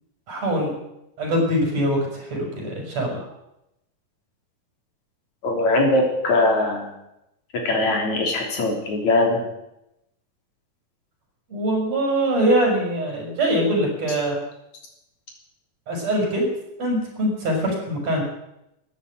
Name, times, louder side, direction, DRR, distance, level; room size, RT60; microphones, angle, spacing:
voice 1, 0.3-0.7 1.2-3.3 11.5-14.4 15.9-16.5 16.8-18.2, right 1 dB, 50° right, 0 dB, 6.7 m, -23 dB
voice 2, 5.4-6.9 7.5-9.4, left 2 dB, 60° left, 1 dB, 4.6 m, -21 dB
14.0 x 10.0 x 9.2 m, 0.86 s
omnidirectional pair, 3.8 m